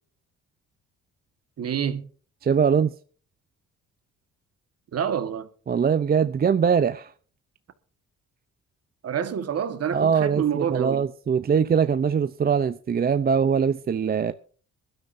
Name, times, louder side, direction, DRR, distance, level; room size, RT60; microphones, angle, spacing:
voice 1, 1.6-2.1 4.9-5.5 9.0-11.1, right 8 dB, 55° right, 1.5 m, -27 dB
voice 2, 2.4-2.9 5.7-7.1 9.9-14.3, right 6 dB, 30° right, 0.5 m, -22 dB
22.5 x 12.0 x 2.6 m
cardioid pair, 90°, 30 cm